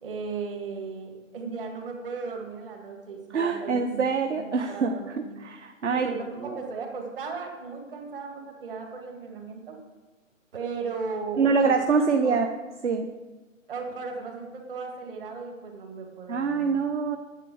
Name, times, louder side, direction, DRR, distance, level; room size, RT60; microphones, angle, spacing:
voice 1, 0.0-4.1 4.3-5.4 5.9-9.8 10.5-12.4 13.7-16.7, right 4 dB, 40° right, 2 dB, 2.2 m, -36 dB
voice 2, 3.3-6.1 6.4-6.6 11.4-12.5 12.8-13.1 16.3-17.2, right 5 dB, 60° right, 6 dB, 0.9 m, -25 dB
9.9 x 7.9 x 6.3 m, 1.2 s
figure-of-eight pair, 150°, 40 cm